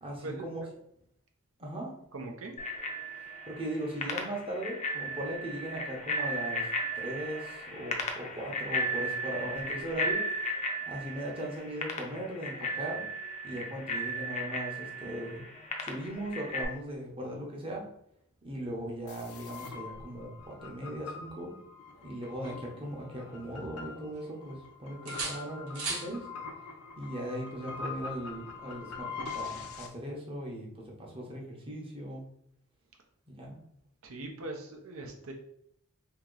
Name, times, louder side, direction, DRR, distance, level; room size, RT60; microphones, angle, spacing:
voice 1, 0.0-0.6 1.6-1.9 3.5-6.7 6.9-10.2 10.9-13.1 13.4-15.4 15.8-17.9 18.4-21.5 22.0-26.3 27.0-32.3 33.3-33.6, right 1 dB, 25° right, -2 dB, 0.9 m, -38 dB
voice 2, 2.1-2.5 34.0-35.3, right 2 dB, 70° right, 3 dB, 0.7 m, -40 dB
Bicycle bell, 2.6-16.6, equal, 30° left, 0.5 m, -35 dB
sound 1, 19.1-29.9, left 5 dB, 85° left, 0.6 m, -43 dB
sound 2, 21.9-23.5 23.8-24.6 25.1-26.1 28.0-28.2, right 3 dB, 85° right, 1.1 m, -40 dB
2.9 x 2.8 x 3.8 m, 0.72 s
head